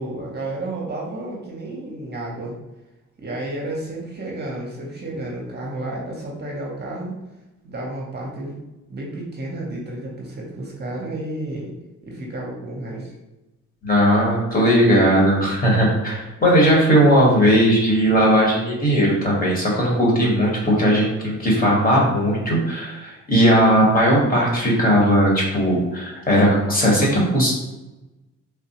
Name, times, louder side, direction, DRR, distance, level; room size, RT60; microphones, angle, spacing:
voice 1, 0.0-2.5 3.2-7.2 7.6-8.6 8.9-11.7 12.0-13.1, right 1 dB, 35° right, -2 dB, 0.8 m, -31 dB
voice 2, 13.8-27.5, equal, 30° left, -3 dB, 1.2 m, -17 dB
3.4 x 2.2 x 2.9 m, 1.0 s
cardioid pair, 90°, 30 cm